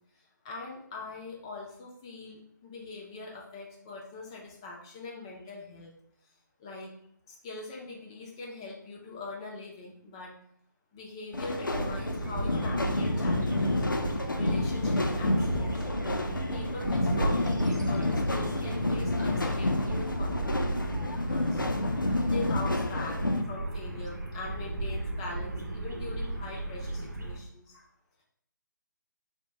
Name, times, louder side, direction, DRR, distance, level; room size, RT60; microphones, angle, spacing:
voice 1, 0.2-5.9 6.6-6.9 7.3-10.3 10.9-13.9 14.3-15.9 16.5-20.8 21.1-21.6 22.2-23.2 23.5-27.8, left 3 dB, 15° left, -2 dB, 0.4 m, -42 dB
sound 1, 11.3-23.4, left 1 dB, 90° left, 0.4 m, -29 dB
sound 2, 11.7-27.4, right 2 dB, 65° right, 0.8 m, -35 dB
3.5 x 2.1 x 3.9 m, 0.69 s
figure-of-eight pair, 145°, 11 cm